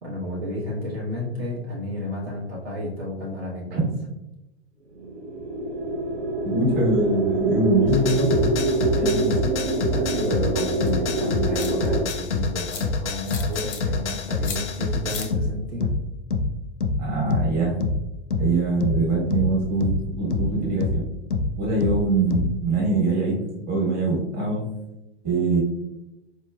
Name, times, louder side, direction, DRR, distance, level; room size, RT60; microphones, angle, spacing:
voice 1, 0.0-3.9 9.9-16.0, left 1 dB, 65° right, -4 dB, 1.2 m, -31 dB
sound 1, 5.0-12.1, right 2 dB, 85° right, 0.5 m, -25 dB
voice 2, 6.4-8.5 9.0-9.5 17.0-17.7 18.4-21.0 21.6-23.4 23.7-24.7 25.2-25.6, right 3 dB, 30° right, -4 dB, 1.4 m, -23 dB
sound 2, 7.9-22.6, left 3 dB, 85° left, 0.5 m, -27 dB
sound 3, 10.9-11.0 11.5-12.1 12.7-12.8 13.3-13.8 14.4-14.6 15.1-15.3, left 7 dB, 25° left, 0.5 m, -35 dB
4.3 x 2.9 x 2.3 m, 0.93 s
figure-of-eight pair, 95°, 34 cm